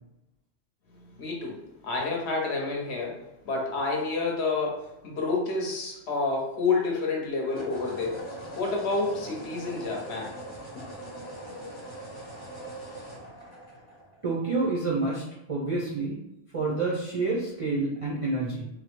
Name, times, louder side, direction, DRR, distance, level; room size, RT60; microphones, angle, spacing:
voice 1, 1.2-8.3 8.5-10.4, left 3 dB, 65° left, -1 dB, 0.9 m, -29 dB
sound 1, 3.3-3.5 7.4-14.5, right 1 dB, 25° left, 0.8 m, -41 dB
voice 2, 14.2-15.2 15.5-16.2 16.5-18.7, right 3 dB, 45° right, -6 dB, 0.4 m, -28 dB
2.9 x 2.0 x 2.9 m, 0.88 s
omnidirectional pair, 1.2 m